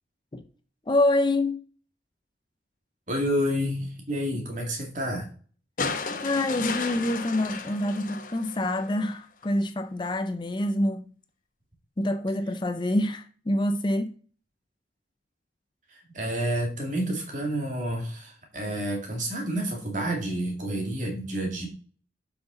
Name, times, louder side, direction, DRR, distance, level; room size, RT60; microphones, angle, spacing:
voice 1, 0.9-1.6 6.2-11.1 12.0-14.1, left 1 dB, 25° left, 0.5 m, -26 dB
voice 2, 3.1-5.3 15.9-21.7, equal, 45° right, 2.2 m, -29 dB
sound 1, 5.8-9.1 10.4-10.5, left 4 dB, 45° left, 0.8 m, -34 dB
7.9 x 5.9 x 4.0 m
head